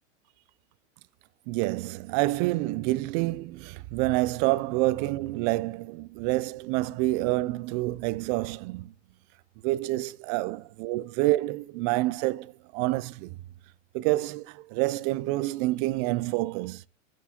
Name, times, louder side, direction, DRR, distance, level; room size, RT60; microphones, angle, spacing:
voice 1, 1.5-8.9 9.6-13.4 13.9-16.8, right 19 dB, 40° right, 0.4 m, -28 dB
13.0 x 4.5 x 2.9 m
hypercardioid pair, 105°, 38 cm